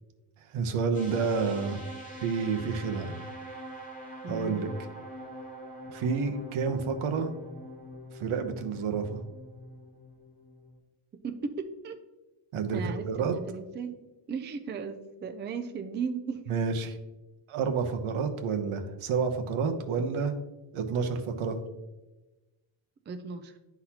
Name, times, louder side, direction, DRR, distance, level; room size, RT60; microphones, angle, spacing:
voice 1, 0.5-1.8 2.2-3.1 4.3-4.7 5.9-7.3 8.2-9.2 12.5-13.4 16.5-17.0 17.5-20.3 20.7-21.6, right 5 dB, 90° right, 6 dB, 0.9 m, -29 dB
sound 1, 0.9-10.8, equal, 15° left, 1.3 m, -44 dB
voice 2, 4.2-4.7 11.2-12.0 12.7-14.0 14.3-16.4 23.1-23.6, right 5 dB, 25° right, 7 dB, 0.3 m, -36 dB
11.0 x 4.0 x 2.8 m, 1.1 s
wide cardioid pair, 165°, 48 cm